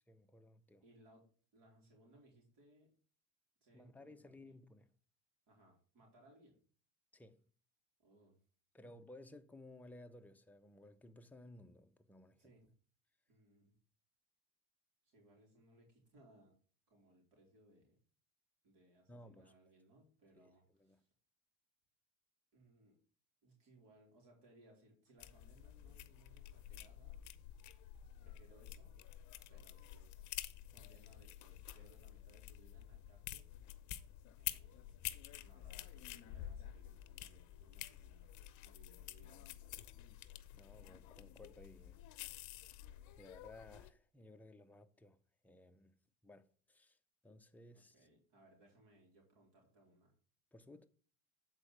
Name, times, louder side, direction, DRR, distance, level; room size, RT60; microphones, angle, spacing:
voice 1, 0.1-0.8 3.7-4.9 7.1-7.4 8.7-12.4 19.1-19.5 20.4-21.0 40.5-42.2 43.2-47.0 47.2-48.1 50.5-50.9, left 1 dB, 5° left, 0.6 m, -58 dB
voice 2, 0.8-1.2 1.5-2.9 3.6-4.5 5.5-6.6 8.0-8.4 8.8-8.9 12.4-12.7 13.3-13.7 15.0-16.5 16.9-18.0 18.6-21.1 22.5-23.0 23.4-27.2 28.2-28.9 29.5-30.3 30.7-33.5 34.4-39.7 47.7-50.2, right 1 dB, 55° right, 3.3 m, -67 dB
sound 1, 25.2-43.9, left 13 dB, 50° left, 0.7 m, -50 dB
8.2 x 4.4 x 4.8 m
supercardioid pair, 100°, 39 cm